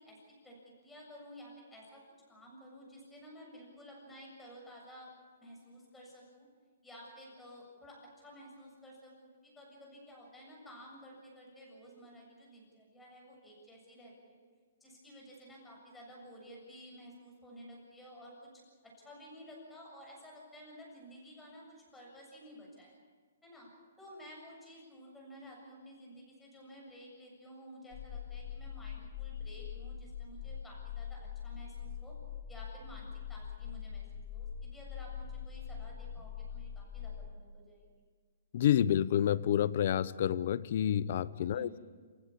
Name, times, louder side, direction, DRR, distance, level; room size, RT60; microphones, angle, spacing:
voice 1, 0.0-2.0 2.3-5.1 5.4-6.5 6.8-14.4 14.8-18.5 18.8-23.0 23.4-23.7 24.0-32.1 32.5-37.9 41.5-41.8, equal, 5° left, -3 dB, 7.4 m, -53 dB
sound 1, 27.9-37.3, left 8 dB, 35° left, 3.1 m, -43 dB
voice 2, 38.5-41.8, left 10 dB, 50° left, 19 dB, 0.7 m, -29 dB
28.0 x 16.0 x 8.6 m, 1.5 s
hypercardioid pair, 160°, 0 cm